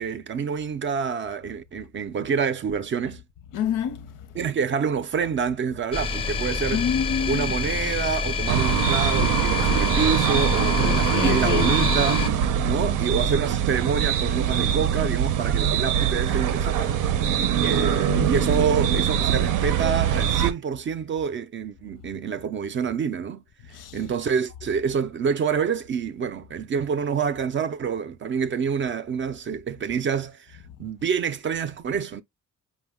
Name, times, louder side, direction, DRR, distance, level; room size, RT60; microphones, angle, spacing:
voice 1, 0.0-3.2 4.3-6.8 7.3-12.2 12.6-17.0 17.6-23.4 23.9-32.2, right 6 dB, 40° right, 0.4 m, -27 dB
voice 2, 3.5-4.2 6.7-7.5 10.8-11.9 18.1-18.3 23.7-24.0, left 8 dB, 90° left, 0.7 m, -28 dB
sound 1, 5.9-12.3, left 4 dB, 20° left, 0.5 m, -27 dB
sound 2, 8.5-20.5, right 8 dB, 90° right, 0.6 m, -23 dB
5.3 x 2.1 x 3.4 m
cardioid pair, 140°, 31 cm